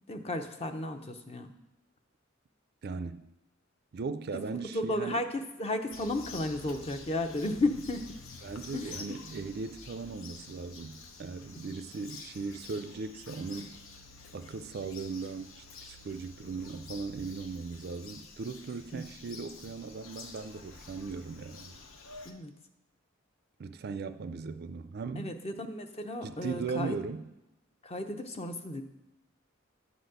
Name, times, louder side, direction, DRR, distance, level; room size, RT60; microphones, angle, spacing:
voice 1, 0.1-1.5 4.3-4.4 4.7-8.0 8.7-9.2 18.9-19.1 22.2-22.5 25.2-27.0 27.8-28.8, left 2 dB, 30° left, 0.7 m, -34 dB
voice 2, 2.8-3.3 3.9-5.2 8.4-13.8 14.3-21.8 23.6-25.4 26.2-27.3, right 4 dB, 50° right, 0.4 m, -38 dB
Bird vocalization bird call bird song, 5.9-22.3, left 4 dB, 85° left, 0.9 m, -49 dB
11.0 x 4.1 x 7.8 m
head